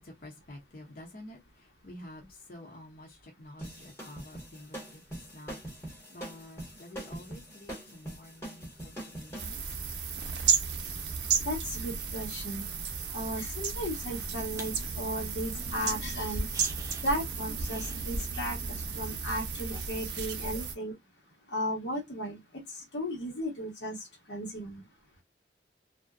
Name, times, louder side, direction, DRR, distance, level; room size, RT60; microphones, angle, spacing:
voice 1, 0.0-9.7, left 1 dB, 55° left, 0.8 m, -49 dB
sound 1, 3.6-9.5, right 1 dB, 15° left, 1.0 m, -43 dB
sound 2, 9.4-20.7, right 6 dB, 80° right, 0.6 m, -33 dB
voice 2, 11.4-12.7 13.1-16.5 17.0-18.6 18.9-20.9 21.5-22.4 22.7-24.0 24.3-24.8, equal, 90° left, 1.1 m, -35 dB
sound 3, 13.9-19.2, equal, 15° right, 0.4 m, -43 dB
2.6 x 2.2 x 2.3 m
head